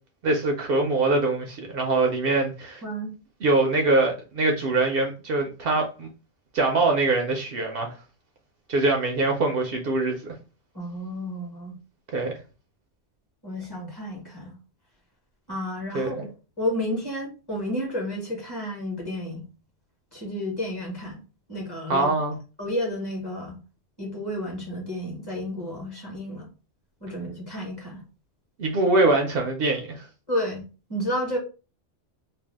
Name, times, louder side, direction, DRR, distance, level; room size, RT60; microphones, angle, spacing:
voice 1, 0.2-2.8 3.4-6.1 6.5-7.9 8.7-10.3 12.1-12.3 15.9-16.2 21.9-22.3 28.6-30.1, right 2 dB, 65° right, 0.7 m, -23 dB
voice 2, 10.7-11.8 13.4-14.5 15.5-16.3 16.6-19.4 20.1-21.2 21.5-22.1 22.6-23.6 24.0-26.5 27.0-28.0 30.3-30.6 30.9-31.4, equal, 20° left, 1.1 m, -31 dB
2.6 x 2.2 x 3.3 m
omnidirectional pair, 1.1 m